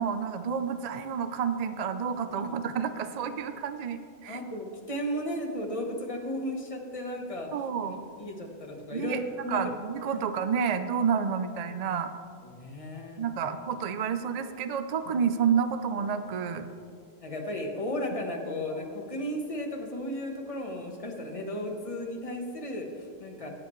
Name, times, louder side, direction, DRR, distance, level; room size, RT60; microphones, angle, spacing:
voice 1, 0.0-4.4 7.5-8.0 8.9-12.1 13.2-16.7, right 7 dB, 50° right, 10 dB, 0.5 m, -30 dB
voice 2, 4.3-7.5 7.9-9.6 10.1-10.2 12.4-13.2 17.2-23.5, left 1 dB, 30° left, 1 dB, 1.3 m, -35 dB
17.0 x 7.7 x 3.1 m, 2.3 s
omnidirectional pair, 1.1 m